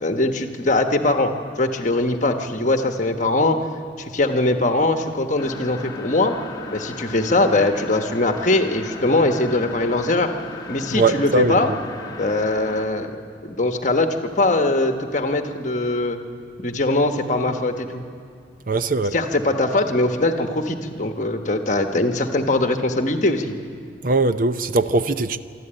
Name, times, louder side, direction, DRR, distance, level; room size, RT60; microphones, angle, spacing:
voice 1, 0.0-3.6 4.0-6.3 6.7-10.3 10.7-11.7 12.1-13.1 13.4-16.2 16.6-18.0 19.1-23.5, left 2 dB, 40° left, 1.2 m, -21 dB
sound 1, 5.4-12.8, left 2 dB, 20° left, 1.3 m, -36 dB
voice 2, 10.9-11.8 18.7-19.1 24.0-25.4, right 2 dB, 50° right, 0.6 m, -20 dB
26.0 x 12.5 x 8.9 m
head